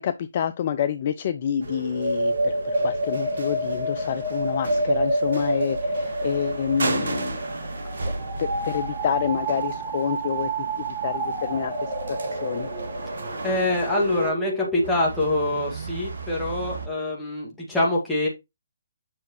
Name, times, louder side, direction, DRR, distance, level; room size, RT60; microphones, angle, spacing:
voice 1, 0.0-7.4 8.0-8.1 8.4-10.5 10.8-11.9 12.3-12.7, left 8 dB, 40° left, 0.5 m, -28 dB
sound 1, 1.6-14.9, right 1 dB, 30° right, 3.3 m, -28 dB
sound 2, 1.6-14.3 14.8-16.9, right 3 dB, 65° right, 1.6 m, -35 dB
voice 2, 13.4-18.3, left 1 dB, 5° left, 2.2 m, -25 dB
7.6 x 5.7 x 3.1 m
figure-of-eight pair, 135°, 0 cm